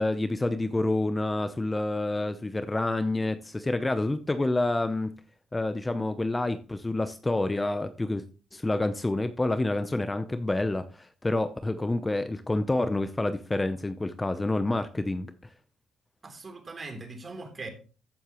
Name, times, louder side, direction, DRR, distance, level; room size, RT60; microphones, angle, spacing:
voice 1, 0.0-5.1 5.5-8.2 8.5-15.3, left 2 dB, 15° left, 0.7 m, -28 dB
voice 2, 16.2-17.7, right 3 dB, 35° right, 3.4 m, -40 dB
14.5 x 8.0 x 3.1 m
cardioid pair, 90°, 0 cm